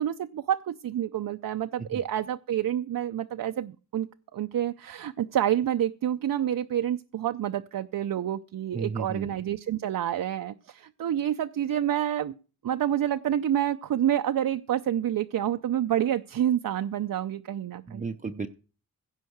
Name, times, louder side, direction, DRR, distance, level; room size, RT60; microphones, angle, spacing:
voice 1, 0.0-12.3 12.6-18.1, right 10 dB, 75° right, 8 dB, 0.6 m, -28 dB
voice 2, 8.7-9.3 17.9-18.5, right 4 dB, 25° right, 7 dB, 0.6 m, -33 dB
16.0 x 5.6 x 7.9 m, 0.37 s
wide cardioid pair, 170°, 34 cm